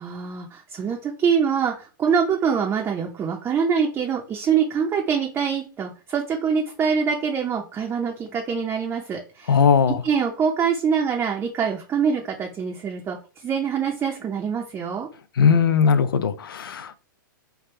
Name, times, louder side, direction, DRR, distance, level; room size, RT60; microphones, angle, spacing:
voice 1, 0.0-9.6 10.0-13.2 13.4-15.1, right 6 dB, 20° right, 0.6 m, -24 dB
voice 2, 9.5-10.0 15.4-17.0, left 6 dB, 85° left, 0.5 m, -19 dB
3.4 x 2.2 x 4.4 m
hypercardioid pair, 130°, 12 cm